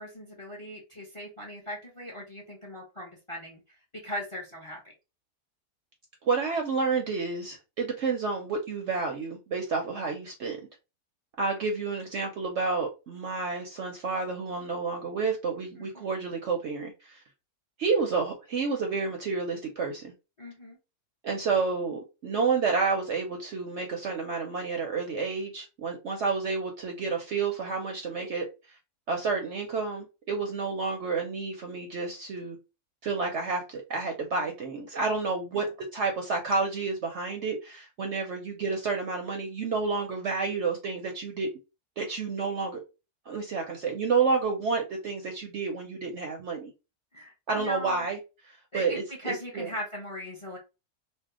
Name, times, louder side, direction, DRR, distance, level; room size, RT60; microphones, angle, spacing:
voice 1, 0.0-3.6 4.0-4.8 15.8-16.1 20.4-20.8 35.5-35.7 47.1-48.1 48.7-50.6, equal, 30° left, 0.6 m, -39 dB
voice 2, 6.2-10.6 11.4-17.2 17.8-20.1 21.2-28.5 29.1-32.6 33.0-41.5 42.0-42.8 43.3-46.7 47.5-48.2 48.5-49.7, right 4 dB, 65° right, 0.7 m, -30 dB
2.7 x 2.2 x 3.5 m
omnidirectional pair, 1.7 m